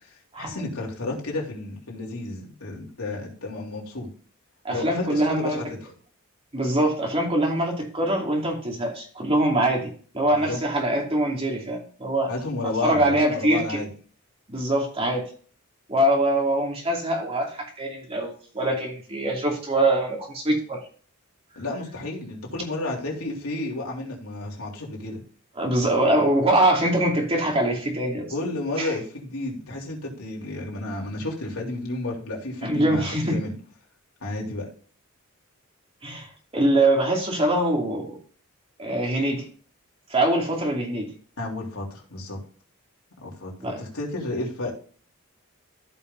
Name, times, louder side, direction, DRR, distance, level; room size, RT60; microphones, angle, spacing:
voice 1, 0.4-4.1 4.7-5.8 10.3-10.6 12.3-13.9 21.5-25.2 28.3-33.5 34.2-34.7 41.4-42.4 43.2-43.5 43.8-44.7, left 2 dB, 80° left, -2 dB, 3.3 m, -31 dB
voice 2, 4.6-5.6 6.5-12.3 12.8-13.8 14.5-15.2 15.9-20.8 25.6-28.3 28.8-28.9 32.6-33.4 36.0-38.2 38.8-39.5 40.1-41.1 43.6-43.8, right 1 dB, 25° right, 0 dB, 2.6 m, -23 dB
15.0 x 5.6 x 2.7 m, 0.43 s
head